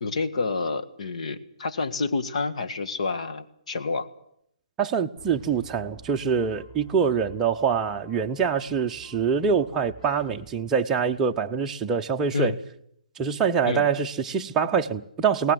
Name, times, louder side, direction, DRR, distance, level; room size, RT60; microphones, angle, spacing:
voice 1, 0.0-4.1 12.3-12.5 13.6-13.9, left 4 dB, 65° left, 1.8 m, -28 dB
voice 2, 4.8-12.5 13.2-15.5, right 6 dB, 15° right, 0.8 m, -25 dB
sound 1, 5.2-11.3, right 5 dB, 15° left, 6.2 m, -50 dB
23.0 x 18.5 x 7.9 m
hypercardioid pair, 155°, 4 cm